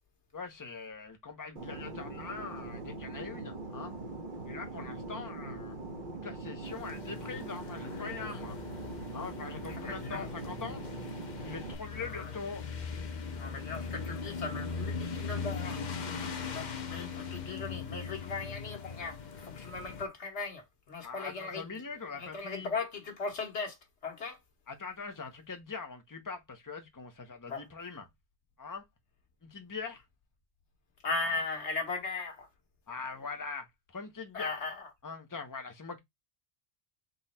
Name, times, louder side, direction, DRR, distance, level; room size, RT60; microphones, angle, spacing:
voice 1, 0.3-3.9 4.5-5.7 6.1-8.6 9.1-10.8 11.4-12.7 21.0-22.7 24.7-28.0 28.6-28.8 29.4-30.0 32.9-34.5 35.0-36.0, left 4 dB, 20° left, 0.9 m, -42 dB
Fixed-wing aircraft airplane, 1.6-11.7, right 2 dB, 50° right, 1.2 m, -42 dB
sound 1, 6.6-20.0, left 5 dB, 50° left, 0.7 m, -40 dB
voice 2, 9.7-10.3 11.9-12.3 13.4-21.8 22.2-24.4 27.5-27.7 31.0-32.5 34.3-34.9, left 4 dB, 85° left, 1.5 m, -38 dB
4.0 x 3.0 x 4.1 m
omnidirectional pair, 1.1 m